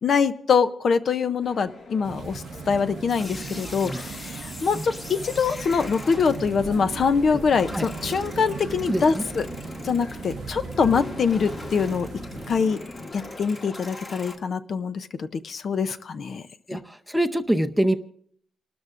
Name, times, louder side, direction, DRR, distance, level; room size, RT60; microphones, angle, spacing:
voice 1, 0.0-9.5 9.8-12.1 12.5-12.8 13.1-16.4, left 5 dB, 50° left, 11 dB, 0.5 m, -24 dB
sound 1, 1.4-13.4, left 2 dB, 70° left, 5.0 m, -46 dB
sound 2, 2.0-12.6, right 6 dB, 65° right, 0.7 m, -38 dB
sound 3, 3.1-14.4, left 2 dB, 30° left, 1.5 m, -40 dB
voice 2, 8.9-9.2 16.7-18.0, right 1 dB, ahead, 7 dB, 0.6 m, -24 dB
30.0 x 13.0 x 2.5 m, 0.64 s
wide cardioid pair, 175°, 0 cm